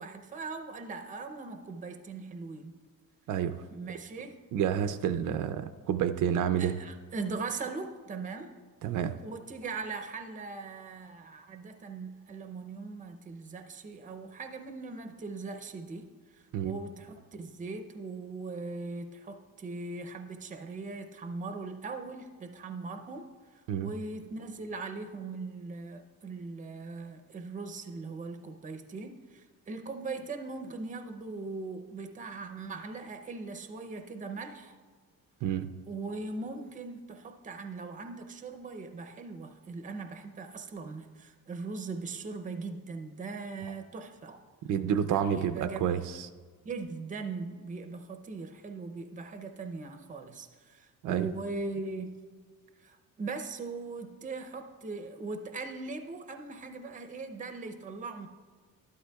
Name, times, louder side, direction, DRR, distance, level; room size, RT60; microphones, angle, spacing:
voice 1, 0.0-2.7 3.7-4.4 6.6-8.5 9.2-16.2 16.6-23.3 23.8-34.7 35.9-44.4 45.0-46.1 46.6-52.2 52.8-58.3, right 3 dB, 25° right, 6 dB, 0.6 m, -40 dB
voice 2, 4.5-6.8 8.8-9.2 16.5-16.7 23.7-23.9 35.4-35.7 44.7-46.3 51.0-51.3, right 9 dB, 65° right, 9 dB, 0.5 m, -29 dB
12.5 x 11.5 x 2.3 m, 1.5 s
cardioid pair, 140°, 34 cm